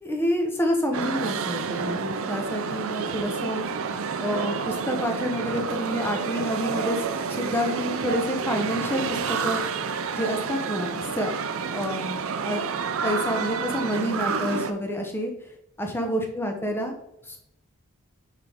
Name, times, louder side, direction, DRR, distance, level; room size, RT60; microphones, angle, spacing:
voice 1, 0.0-3.6 4.2-7.0 7.3-9.6 10.1-11.4 11.7-12.6 13.0-15.3 15.8-16.9 17.3-17.4, equal, 10° left, 2 dB, 0.8 m, -28 dB
sound 1, 0.9-14.7, right 5 dB, 65° right, 0.5 m, -29 dB
5.9 x 4.5 x 3.5 m, 0.82 s
head